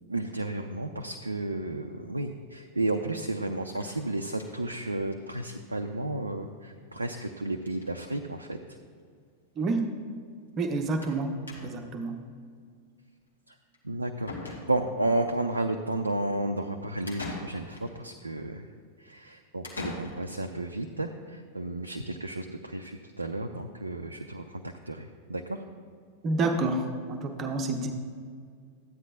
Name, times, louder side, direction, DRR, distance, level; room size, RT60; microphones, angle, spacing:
voice 1, 0.1-8.6 13.5-13.6 13.8-18.7 19.0-25.6, right 2 dB, 80° right, 4 dB, 0.4 m, -32 dB
sound 1, 3.7-4.8 5.1-5.2 5.5-5.6 5.8-5.9 7.1-7.3 7.6-7.9 8.8-8.9 9.2-9.3 11.0-11.2 11.5-11.9 13.7-13.8 14.3-15.0 17.1-17.9 19.6-20.5, left 2 dB, 80° left, 1.5 m, -41 dB
voice 2, 9.6-9.9 10.6-11.3 11.6-12.2 26.2-27.9, right 3 dB, 30° right, 4 dB, 0.8 m, -28 dB
13.5 x 9.6 x 2.4 m, 2.1 s
figure-of-eight pair, 90°, 0 cm